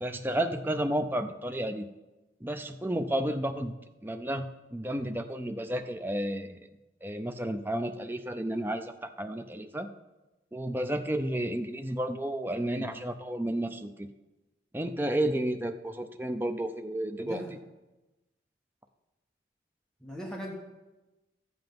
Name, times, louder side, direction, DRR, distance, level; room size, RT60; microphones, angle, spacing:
voice 1, 0.0-1.9 2.4-3.7 4.0-4.5 4.7-6.6 7.0-8.9 9.2-9.9 10.5-14.1 14.7-17.4, right 1 dB, 10° right, 7 dB, 0.5 m, -31 dB
voice 2, 17.2-17.5 20.0-20.5, equal, 5° left, -2 dB, 1.3 m, -39 dB
12.5 x 7.9 x 5.2 m, 1.1 s
head